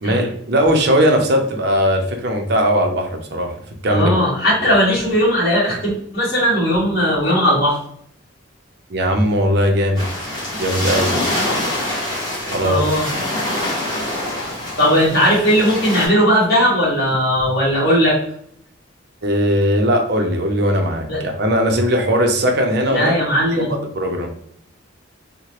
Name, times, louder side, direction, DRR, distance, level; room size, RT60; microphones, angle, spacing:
voice 1, 0.0-3.5 3.8-4.1 4.6-4.7 8.9-10.1 10.6-11.1 12.5-12.8 19.2-23.1 23.6-23.7 23.9-24.3, equal, 55° right, 3 dB, 0.5 m, -18 dB
voice 2, 3.9-7.8 12.6-13.1 14.8-18.2 21.1-21.2 22.9-23.7, equal, 50° left, -7 dB, 1.3 m, -17 dB
sound 1, 10.0-16.1, left 1 dB, 20° left, 1.0 m, -25 dB
2.9 x 2.1 x 2.9 m, 0.64 s
head